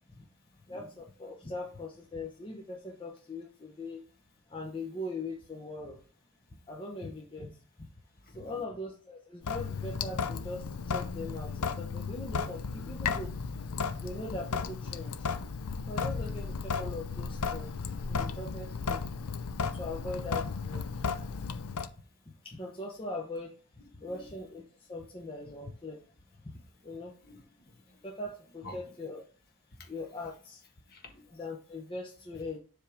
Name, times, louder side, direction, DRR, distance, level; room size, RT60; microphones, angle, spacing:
voice 1, 0.7-4.0 4.5-6.0 6.7-7.6 8.3-13.3 13.9-15.3 15.8-17.7 18.1-19.0 19.6-21.0 21.7-21.8 22.4-23.5 24.0-24.6 24.9-26.0 26.8-27.1 28.0-29.2 29.9-30.6 31.3-32.6, left 2 dB, 25° left, -1 dB, 0.9 m, -40 dB
Sink (filling or washing) / Drip, 9.4-21.9, left 5 dB, 80° left, 0.6 m, -34 dB
voice 2, 27.2-28.0 28.6-28.8 29.8-29.9 30.9-31.4, left 2 dB, 45° left, 3 dB, 1.5 m, -51 dB
7.4 x 3.5 x 5.0 m, 0.42 s
head